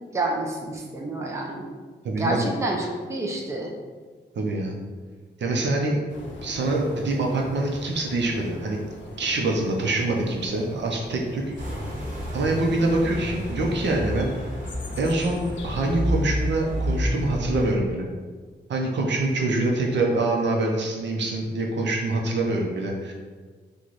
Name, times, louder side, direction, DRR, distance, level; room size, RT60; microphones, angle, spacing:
voice 1, 0.1-1.7 2.2-3.7, right 2 dB, 15° right, -1 dB, 0.4 m, -28 dB
voice 2, 2.0-2.5 4.4-4.8 5.4-6.0 6.4-8.8 9.2-11.4 12.3-14.4 15.0-18.1 18.7-23.1, right 2 dB, 75° right, 0 dB, 0.6 m, -25 dB
Windy UK Woodland in late Winter with European Robin singing, 6.1-16.0, left 2 dB, 90° left, 0.5 m, -42 dB
sound 1, 11.6-17.7, equal, 45° right, 1.1 m, -30 dB
3.1 x 2.3 x 3.9 m, 1.5 s
wide cardioid pair, 135°, 19 cm